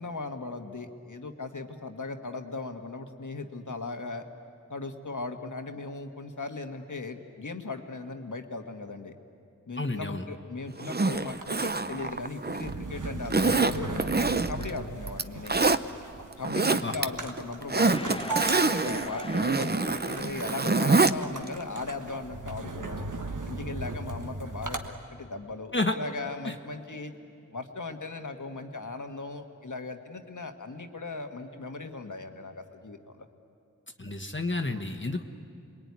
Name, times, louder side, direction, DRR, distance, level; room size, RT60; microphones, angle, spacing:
voice 1, 0.0-4.2 4.7-9.1 9.7-15.6 16.4-23.1 23.4-24.8 25.1-27.1 27.5-33.3, left 3 dB, 80° left, 6 dB, 1.6 m, -38 dB
voice 2, 9.8-10.2 16.8-16.9 25.7-26.0 26.4-26.5 34.0-35.3, left 2 dB, 40° left, 4 dB, 1.3 m, -30 dB
Zipper (clothing), 10.8-12.7 13.3-14.7 15.1-15.8 16.3-17.1 17.4-21.2 21.5-21.6, right 3 dB, 35° right, 0.7 m, -25 dB
sound 1, 11.1-24.9, right 3 dB, 85° right, 1.5 m, -38 dB
sound 2, 17.9-20.4, left 2 dB, 20° left, 0.6 m, -40 dB
27.0 x 21.5 x 9.7 m, 2.5 s
wide cardioid pair, 55°, 30 cm